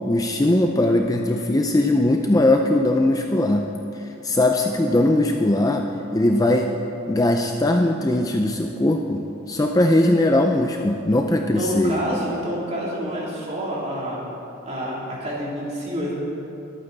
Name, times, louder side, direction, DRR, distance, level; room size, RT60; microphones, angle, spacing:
voice 1, 0.1-3.7 3.9-6.7 7.1-12.0, left 1 dB, 15° left, 3 dB, 0.4 m, -20 dB
voice 2, 11.5-14.2 14.6-16.1, equal, 30° right, -5 dB, 3.0 m, -28 dB
22.5 x 8.8 x 4.0 m, 2.8 s
head